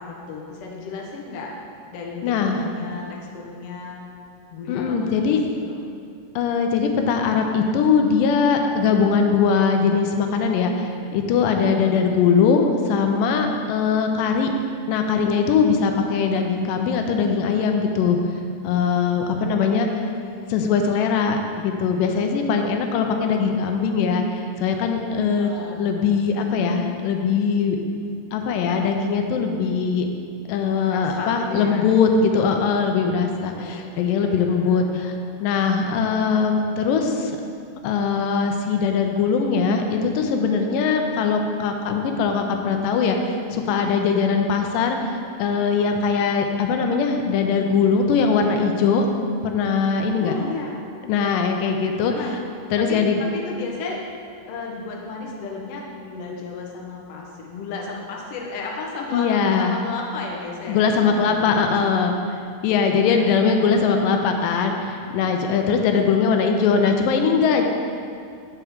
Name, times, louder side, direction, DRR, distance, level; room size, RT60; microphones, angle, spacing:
voice 1, 0.0-1.5 1.9-4.0 4.5-5.4 5.7-5.8 19.2-20.5 25.3-25.9 26.3-26.5 30.6-31.9 33.0-35.0 50.2-50.8 52.1-52.4 52.8-54.0 54.4-59.3 59.5-61.9 62.7-63.8, left 4 dB, 65° left, -2 dB, 1.6 m, -34 dB
voice 2, 2.2-2.6 4.7-5.4 6.4-14.5 14.9-18.2 18.6-19.9 20.5-25.5 25.8-27.8 28.3-30.1 30.5-35.1 35.4-37.4 37.8-49.1 49.4-50.3 51.0-52.1 52.7-53.2 59.1-59.8 60.7-67.7, left 5 dB, 90° left, 4 dB, 2.2 m, -21 dB
8.3 x 5.8 x 3.5 m, 2.4 s
omnidirectional pair, 3.8 m